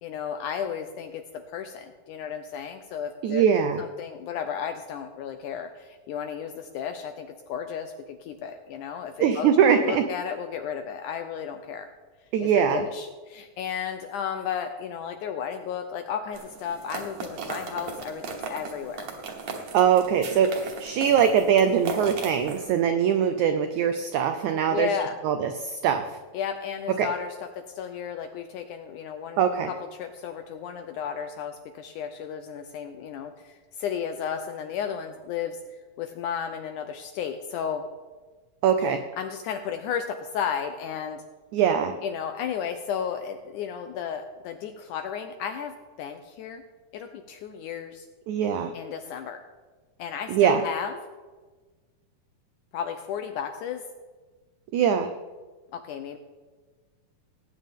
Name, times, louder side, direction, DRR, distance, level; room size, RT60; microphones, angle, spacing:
voice 1, 0.0-1.2 1.5-3.5 3.8-11.9 12.4-19.1 24.7-25.2 26.3-27.4 27.7-29.4 29.7-37.8 39.2-41.2 42.0-46.6 46.9-48.1 48.7-49.4 50.0-51.0 52.7-53.8 55.7-56.2, left 8 dB, 80° left, 7 dB, 1.8 m, -33 dB
voice 2, 3.2-3.8 9.2-10.0 12.3-12.8 19.7-24.9 25.2-26.0 27.0-27.1 29.4-29.7 38.6-39.0 41.5-41.9 48.3-48.7 50.3-50.6 54.7-55.1, right 8 dB, 90° right, 8 dB, 1.6 m, -22 dB
sound 1, 16.3-22.6, right 4 dB, 60° right, 2.4 m, -37 dB
18.5 x 9.2 x 3.6 m, 1.3 s
omnidirectional pair, 4.2 m